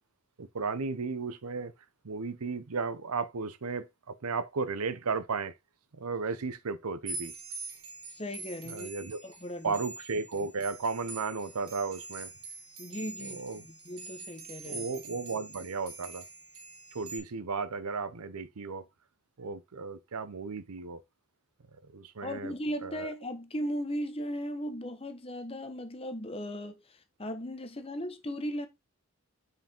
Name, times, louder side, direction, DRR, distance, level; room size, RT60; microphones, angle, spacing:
voice 1, 0.4-1.7 2.0-5.5 5.9-7.3 8.6-9.2 9.6-12.3 13.2-13.7 14.6-16.2 16.9-18.9 19.4-21.0 21.8-22.5 22.8-23.1, right 4 dB, 85° right, 0.7 m, -34 dB
sound 1, 7.1-17.2, right 3 dB, 60° right, 2.0 m, -44 dB
voice 2, 8.1-8.9 9.2-9.7 12.8-14.9 22.2-26.8 27.2-28.7, equal, 25° left, 1.0 m, -37 dB
5.7 x 4.9 x 4.4 m
head